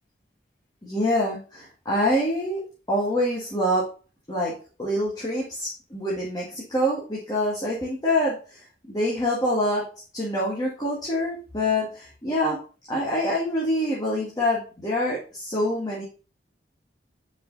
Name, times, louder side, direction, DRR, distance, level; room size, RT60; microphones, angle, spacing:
voice 1, 0.8-2.6 2.9-3.9 4.3-8.4 8.9-12.6 12.9-16.0, left 1 dB, 20° left, -6 dB, 1.8 m, -26 dB
5.3 x 5.2 x 3.9 m, 0.36 s
head